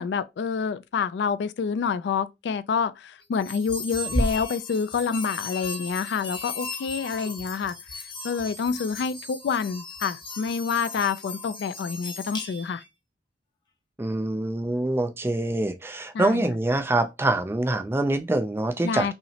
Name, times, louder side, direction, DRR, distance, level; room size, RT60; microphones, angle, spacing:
voice 1, 0.0-7.8 8.2-12.8 16.1-16.6 18.8-19.1, left 6 dB, 75° left, 0.3 m, -28 dB
sound 1, 3.3-12.9, left 1 dB, 25° left, 0.8 m, -35 dB
voice 2, 14.0-19.1, right 2 dB, 15° right, 0.3 m, -25 dB
5.5 x 2.0 x 2.8 m
head